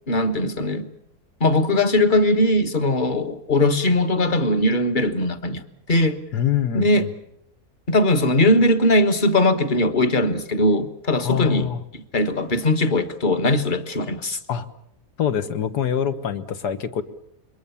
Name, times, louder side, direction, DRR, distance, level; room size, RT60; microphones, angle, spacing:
voice 1, 0.1-0.9 1.4-6.2 6.7-7.1 7.9-11.7 11.9-14.4, left 1 dB, 30° left, 1.3 m, -20 dB
voice 2, 6.3-7.1 11.2-11.8 14.5-14.7 15.2-17.0, left 9 dB, 80° left, 1.8 m, -24 dB
27.0 x 23.0 x 7.1 m
omnidirectional pair, 1.7 m